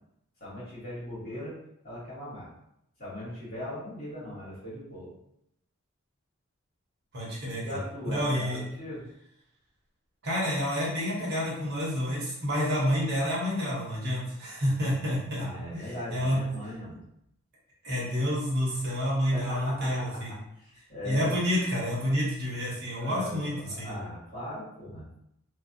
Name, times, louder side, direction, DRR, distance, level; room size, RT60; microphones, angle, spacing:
voice 1, 0.4-1.5 1.8-2.5 3.0-5.1 7.6-9.0 15.3-17.0 19.3-21.3 22.9-25.0, left 1 dB, 45° left, -10 dB, 1.2 m, -39 dB
voice 2, 7.1-7.8 8.1-8.6 10.2-16.4 17.8-20.3 21.0-23.9, equal, 50° right, -5 dB, 0.9 m, -29 dB
2.4 x 2.1 x 2.6 m, 0.78 s
head